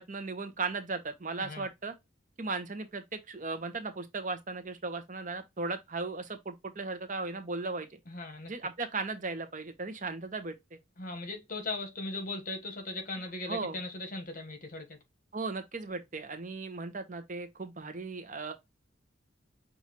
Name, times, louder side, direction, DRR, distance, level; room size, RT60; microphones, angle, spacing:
voice 1, 0.0-1.9 2.4-7.9 8.5-10.5 13.5-13.7 15.3-18.5, right 3 dB, 40° right, 0.9 m, -36 dB
voice 2, 1.4-1.7 8.1-8.5 11.0-15.0, left 2 dB, 45° left, 1.2 m, -38 dB
6.0 x 2.6 x 3.0 m
head